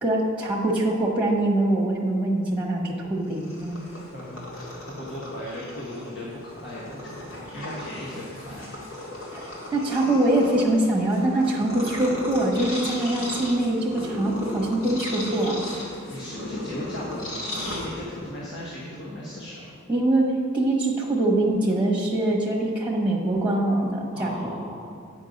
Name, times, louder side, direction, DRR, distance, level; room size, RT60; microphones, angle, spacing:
voice 1, 0.0-3.8 9.3-15.6 19.9-20.3 20.5-24.6, right 1 dB, 5° right, -3 dB, 1.0 m, -23 dB
Purr, 3.2-18.4, left 1 dB, 90° left, 2.0 m, -36 dB
voice 2, 4.1-9.2 15.8-19.7 24.1-24.9, left 1 dB, 55° left, -5 dB, 1.2 m, -37 dB
9.2 x 5.4 x 5.2 m, 2.3 s
head